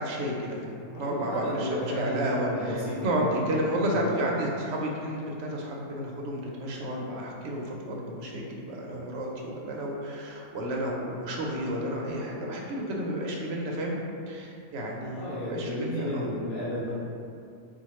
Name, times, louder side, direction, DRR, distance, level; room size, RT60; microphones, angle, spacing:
voice 1, 0.0-14.0 14.3-16.3, right 1 dB, 65° right, -2 dB, 0.8 m, -31 dB
voice 2, 0.9-3.5 3.9-4.2 8.9-9.0 15.1-16.9, equal, 90° left, -9 dB, 1.1 m, -33 dB
4.2 x 2.2 x 3.0 m, 2.5 s
omnidirectional pair, 1.5 m